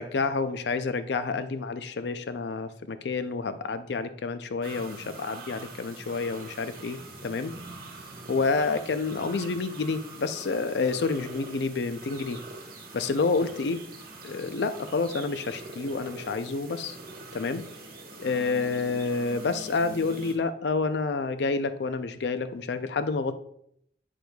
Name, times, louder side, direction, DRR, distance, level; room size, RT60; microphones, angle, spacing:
voice 1, 0.0-7.5 8.3-12.4 12.9-13.8 14.2-17.0 17.3-17.7 18.2-23.4, left 4 dB, 75° left, 11 dB, 0.5 m, -29 dB
sound 1, 4.6-20.3, right 2 dB, 50° right, 1.1 m, -44 dB
8.2 x 6.1 x 2.3 m, 0.70 s
head